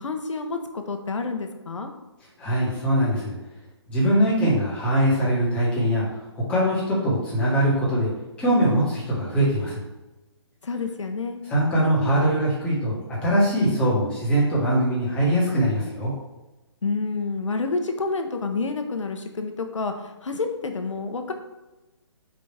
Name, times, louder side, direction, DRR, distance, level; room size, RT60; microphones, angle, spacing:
voice 1, 0.0-1.9 10.6-11.4 16.8-21.3, left 4 dB, 85° left, 6 dB, 1.1 m, -29 dB
voice 2, 2.4-3.3 3.9-6.0 6.3-8.1 8.4-9.8 11.5-16.1, right 1 dB, 5° left, -8 dB, 1.7 m, -22 dB
5.6 x 5.0 x 3.5 m, 1.1 s
hypercardioid pair, 165°, 15 cm